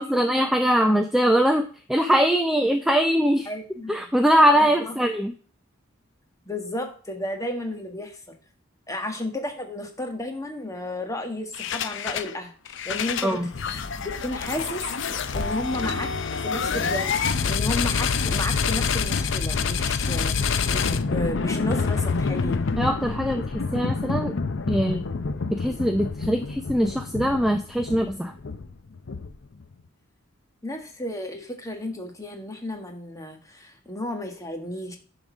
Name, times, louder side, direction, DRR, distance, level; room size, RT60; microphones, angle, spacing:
voice 1, 0.0-1.6 1.9-3.5 3.9-5.3 13.2-13.5 22.8-24.3 24.7-25.0 25.5-28.3, equal, ahead, 5 dB, 0.6 m, -22 dB
voice 2, 3.4-4.1 4.6-4.9 6.5-8.4 8.9-14.9 15.3-20.4 20.7-22.6 30.6-35.0, left 1 dB, 15° left, 4 dB, 1.5 m, -33 dB
sound 1, 11.5-12.3 12.7-29.6, left 5 dB, 60° left, 0.6 m, -27 dB
11.0 x 4.0 x 6.2 m, 0.42 s
head